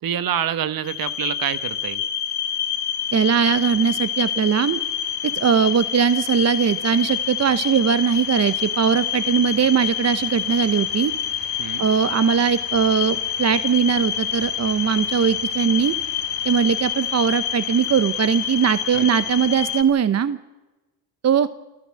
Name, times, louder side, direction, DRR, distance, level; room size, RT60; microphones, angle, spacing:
voice 1, 0.0-2.0 11.6-11.9 18.9-19.1, right 9 dB, 60° right, 14 dB, 1.2 m, -26 dB
sound 1, 0.8-19.8, left 9 dB, 75° left, 2.0 m, -27 dB
voice 2, 3.1-4.8 5.2-11.1 11.8-15.9 16.4-20.4 21.2-21.5, right 7 dB, 40° right, 14 dB, 1.0 m, -20 dB
28.5 x 13.5 x 7.7 m, 1.1 s
supercardioid pair, 75°, 39 cm